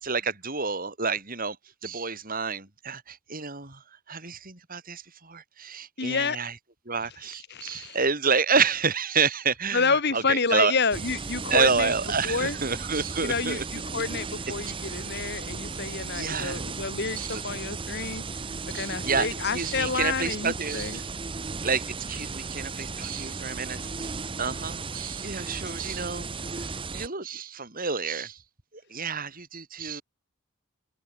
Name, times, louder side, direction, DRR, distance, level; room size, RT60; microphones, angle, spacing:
voice 1, 0.0-1.6 1.8-3.8 4.1-6.5 6.9-10.7 11.5-13.6 16.1-16.6 17.2-17.4 18.7-19.3 19.5-21.1 21.6-24.1 24.4-26.3 26.5-28.4 28.9-30.0, right 5 dB, 40° right, 4.1 m, -29 dB
voice 2, 6.0-6.4 7.5-8.0 9.7-11.9 12.2-12.6 13.2-18.4 18.7-21.0, left 4 dB, 50° left, 2.0 m, -29 dB
sound 1, 10.9-27.1, right 4 dB, 25° right, 0.8 m, -35 dB
head